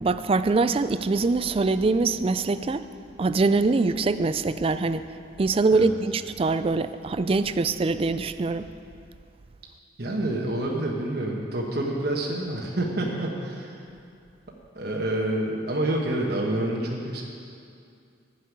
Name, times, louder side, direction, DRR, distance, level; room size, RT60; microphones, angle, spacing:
voice 1, 0.0-2.8 3.2-5.0 5.4-8.7, right 3 dB, 30° right, 12 dB, 0.3 m, -23 dB
voice 2, 10.0-13.8 14.7-17.2, right 1 dB, 55° right, -2 dB, 1.2 m, -28 dB
11.5 x 6.8 x 9.4 m, 2.4 s
head